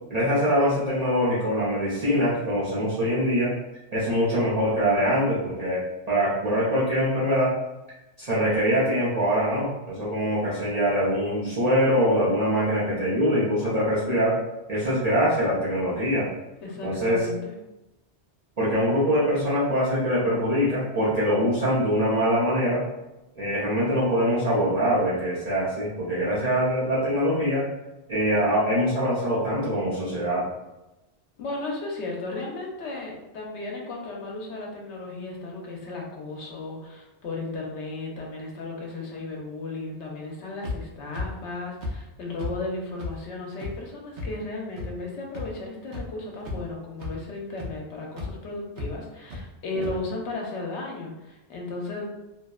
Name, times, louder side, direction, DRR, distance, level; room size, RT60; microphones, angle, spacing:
voice 1, 0.1-3.5 3.9-7.5 8.2-14.4 14.7-16.3 16.8-17.2 18.6-22.8 23.4-27.7 28.1-30.5 49.7-49.9, equal, 40° right, -11 dB, 0.7 m, -23 dB
voice 2, 16.6-17.5 31.4-52.1, left 2 dB, 80° left, -1 dB, 0.9 m, -35 dB
sound 1, 40.6-40.7 41.1-41.2 41.8-41.9 42.4-42.5 43.0-43.1 43.6-43.7 44.2-44.3 44.8-44.9 45.3-45.4 45.9-46.0 46.4-46.7 47.0-47.1 47.6-47.7 48.2-48.3 48.8-48.9 49.3-49.4 49.8-49.9, left 2 dB, 80° right, 0.9 m, -32 dB
2.7 x 2.0 x 2.3 m, 0.98 s
omnidirectional pair, 1.2 m